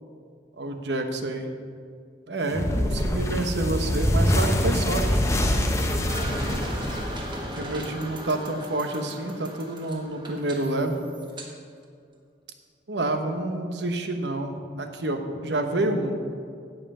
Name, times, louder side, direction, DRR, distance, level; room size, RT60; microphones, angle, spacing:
voice 1, 0.6-1.5 2.3-5.2 7.6-11.1 12.9-16.2, right 2 dB, 65° right, 6 dB, 1.0 m, -28 dB
sound 1, 2.5-7.7, left 1 dB, 15° left, 0.9 m, -24 dB
Chain Gun Wind Down, 6.1-11.5, right 1 dB, 25° right, 1.4 m, -36 dB
16.0 x 5.6 x 5.5 m, 2.3 s
head